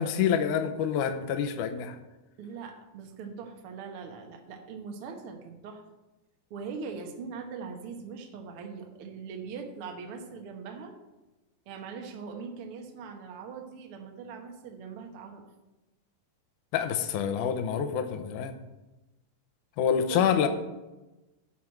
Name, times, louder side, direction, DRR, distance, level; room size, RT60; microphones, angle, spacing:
voice 1, 0.0-2.0 16.7-18.6 19.8-20.5, left 8 dB, 75° left, 8 dB, 2.0 m, -27 dB
voice 2, 2.4-5.8 6.5-10.9 11.7-15.4 20.1-20.2, right 5 dB, 75° right, 3 dB, 1.3 m, -41 dB
11.0 x 4.6 x 7.7 m, 1.0 s
omnidirectional pair, 4.2 m